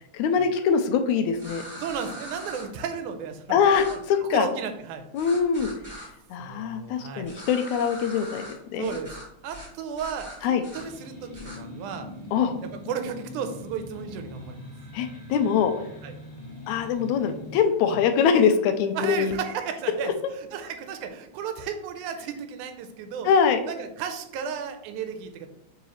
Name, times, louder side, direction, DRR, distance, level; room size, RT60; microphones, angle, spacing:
voice 1, 0.1-1.6 3.5-4.5 5.1-5.7 6.3-8.5 8.7-9.0 10.4-10.6 12.3-12.6 14.9-15.7 16.7-19.3 20.0-20.1 23.3-23.6, left 6 dB, 80° left, 7 dB, 1.9 m, -23 dB
sound 1, 1.3-2.6 3.7-3.9 5.2-6.1 7.2-8.5 8.8-9.2 9.5-9.7 9.9-10.8 11.3-11.6, equal, 20° right, 1.0 m, -41 dB
voice 2, 1.8-3.6 3.9-4.0 4.3-5.1 6.4-7.3 8.8-9.1 9.4-12.1 12.9-14.7 16.0-16.1 17.9-18.0 19.0-23.3 23.7-25.5, right 7 dB, 85° right, 7 dB, 2.1 m, -34 dB
sound 2, 10.7-17.6, left 2 dB, 15° left, 2.1 m, -42 dB
8.3 x 3.9 x 3.1 m, 0.79 s
omnidirectional pair, 3.5 m